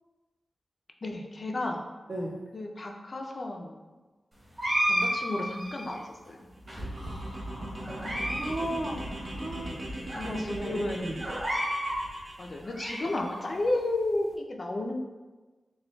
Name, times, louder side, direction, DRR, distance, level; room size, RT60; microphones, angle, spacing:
voice 1, 1.0-1.9 2.5-3.8 4.9-6.5 9.5-11.1 12.4-15.0, left 2 dB, 35° left, 2 dB, 0.4 m, -33 dB
voice 2, 2.1-2.4 6.9-9.8 10.2-11.2, right 1 dB, 80° right, -8 dB, 1.3 m, -36 dB
sound 1, 4.6-6.0 6.7-7.3 7.8-8.5 8.8-8.9 9.6-9.7 10.1-10.2 11.2-12.0 12.5-13.4, equal, 30° right, 1.1 m, -31 dB
sound 2, 6.5-12.6, right 1 dB, 50° right, 0.8 m, -39 dB
6.6 x 2.2 x 2.2 m, 1.2 s
wide cardioid pair, 165°, 0 cm